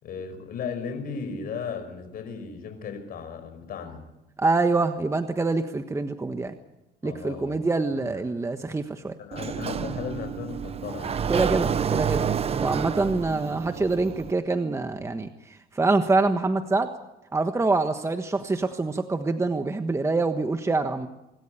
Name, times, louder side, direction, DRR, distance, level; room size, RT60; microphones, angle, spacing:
voice 1, 0.0-4.0 7.0-7.6 8.0-8.1 9.2-11.2, left 6 dB, 60° left, 8 dB, 5.7 m, -35 dB
voice 2, 4.4-6.5 7.0-9.1 11.3-12.2 12.6-16.9 17.3-21.1, right 3 dB, 15° right, 7 dB, 1.3 m, -25 dB
Sliding door, 9.3-14.3, right 7 dB, 35° right, 0.9 m, -29 dB
26.0 x 13.5 x 9.9 m, 0.92 s
cardioid pair, 110°, 17 cm